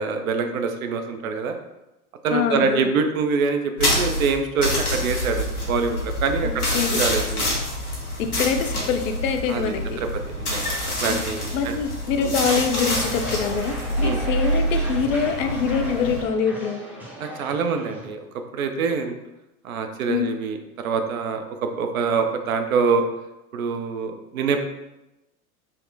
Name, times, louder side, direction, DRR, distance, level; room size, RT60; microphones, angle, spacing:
voice 1, 0.0-1.6 2.2-7.5 9.5-10.1 10.4-11.7 12.2-12.3 14.0-14.2 17.2-18.2 18.5-19.2 19.6-23.0 23.5-24.6, right 5 dB, 70° right, 6 dB, 0.5 m, -25 dB
voice 2, 2.3-2.9 6.4-7.0 8.4-10.0 11.1-11.3 11.5-16.8 20.1-20.4, left 6 dB, 60° left, 6 dB, 0.5 m, -25 dB
sound 1, 3.8-16.2, equal, 80° left, 1.0 m, -26 dB
sound 2, 12.7-18.1, equal, 5° right, 0.6 m, -36 dB
4.0 x 2.0 x 2.7 m, 0.97 s
figure-of-eight pair, 80°, 45 cm